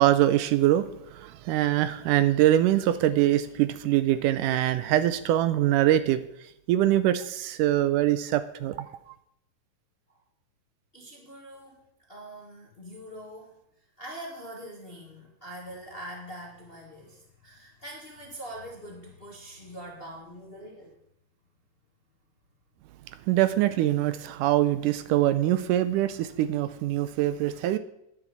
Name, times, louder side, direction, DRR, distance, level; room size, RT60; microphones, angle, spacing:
voice 1, 0.0-9.2 23.3-27.8, right 13 dB, 80° right, 2.1 m, -24 dB
voice 2, 10.9-11.8 12.1-13.6 14.0-20.9, right 1 dB, 25° left, 1.3 m, -43 dB
9.9 x 7.3 x 8.0 m
omnidirectional pair, 3.8 m